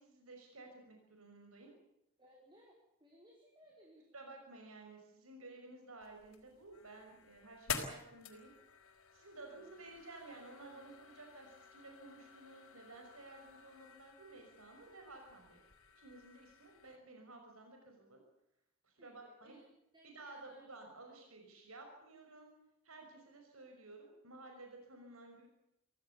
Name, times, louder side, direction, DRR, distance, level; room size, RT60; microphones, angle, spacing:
voice 1, 0.0-1.7 4.1-8.5 9.1-15.6 16.0-18.2 18.8-19.6 20.0-22.5 22.8-25.5, right 2 dB, 80° right, 3 dB, 5.7 m, -54 dB
voice 2, 2.2-4.4 9.4-10.0 19.0-20.7 21.2-21.3, equal, 20° right, -2 dB, 4.9 m, -64 dB
sound 1, 6.0-17.0, left 6 dB, 90° left, 4.2 m, -49 dB
25.0 x 17.0 x 8.4 m, 0.86 s
head